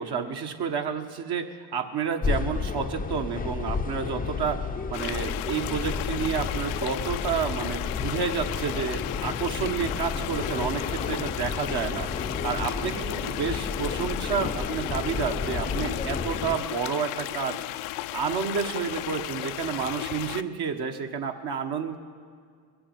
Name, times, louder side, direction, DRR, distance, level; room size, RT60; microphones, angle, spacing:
voice 1, 0.0-12.1 12.4-17.6 18.1-22.0, right 6 dB, 55° right, 5 dB, 1.6 m, -30 dB
sound 1, 2.2-16.6, left 5 dB, 20° left, 0.6 m, -32 dB
sound 2, 4.9-20.4, left 16 dB, 85° left, 0.6 m, -35 dB
21.5 x 7.8 x 8.2 m, 2.1 s
supercardioid pair, 95°, 48 cm